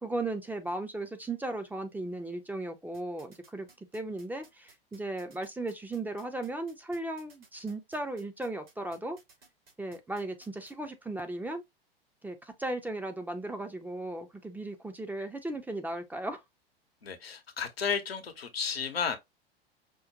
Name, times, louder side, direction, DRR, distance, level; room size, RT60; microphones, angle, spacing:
voice 1, 0.0-9.2 9.8-11.6 12.2-16.4, right 2 dB, 5° right, 0.5 m, -36 dB
sound 1, 2.9-10.7, right 3 dB, 75° right, 2.2 m, -58 dB
voice 2, 17.0-19.2, left 6 dB, 85° left, 0.9 m, -33 dB
5.1 x 2.1 x 2.7 m
hypercardioid pair, 90°, 29 cm